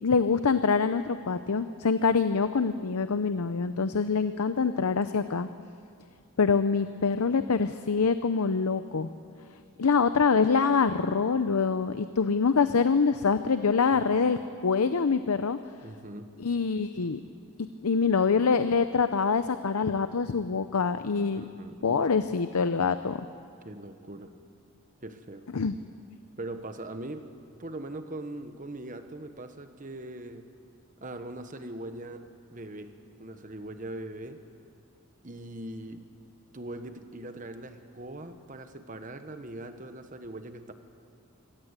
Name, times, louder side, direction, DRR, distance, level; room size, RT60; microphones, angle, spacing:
voice 1, 0.0-5.5 6.4-9.1 9.8-15.6 16.4-17.2 17.8-21.5 21.8-23.2 25.5-25.8, left 5 dB, 90° left, 11 dB, 0.7 m, -25 dB
voice 2, 13.9-14.3 15.8-16.3 21.3-22.3 23.6-24.3 25.0-25.4 26.4-27.3 27.6-30.5 31.0-34.4 35.2-36.0 36.5-40.7, right 1 dB, 35° right, 8 dB, 1.2 m, -41 dB
24.5 x 18.0 x 8.2 m, 2.3 s
head